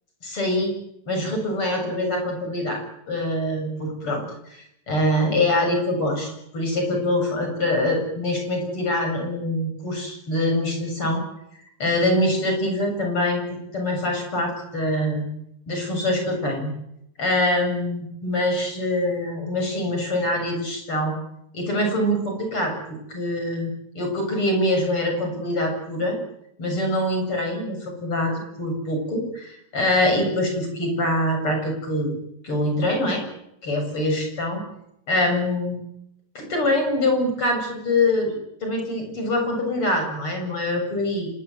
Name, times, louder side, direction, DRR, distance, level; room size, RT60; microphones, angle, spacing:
voice 1, 0.2-0.7 1.1-4.2 4.5-11.2 11.8-13.4 13.7-15.3 15.7-16.7 17.2-21.1 21.5-22.7 23.1-26.2 26.6-32.1 32.4-33.2 33.6-34.6 35.1-35.8 36.3-38.4 38.6-41.3, left 1 dB, 35° left, 3 dB, 8.5 m, -24 dB
26.0 x 22.0 x 9.4 m, 0.79 s
omnidirectional pair, 4.1 m